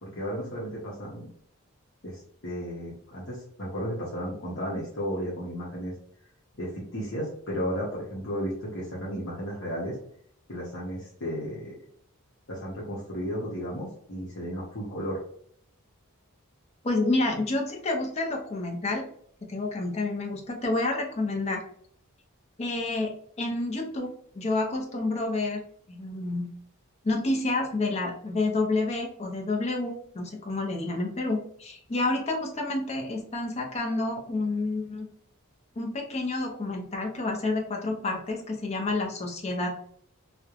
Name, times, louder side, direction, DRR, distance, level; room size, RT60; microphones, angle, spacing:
voice 1, 0.0-1.3 2.0-5.9 6.6-9.9 10.5-11.7 12.5-15.2, equal, 60° left, -5 dB, 0.8 m, -34 dB
voice 2, 16.8-19.1 19.5-21.6 22.6-25.6 25.9-26.5 27.0-35.1 35.8-39.8, left 2 dB, 30° left, 1 dB, 0.5 m, -29 dB
3.0 x 2.1 x 2.4 m, 0.63 s
head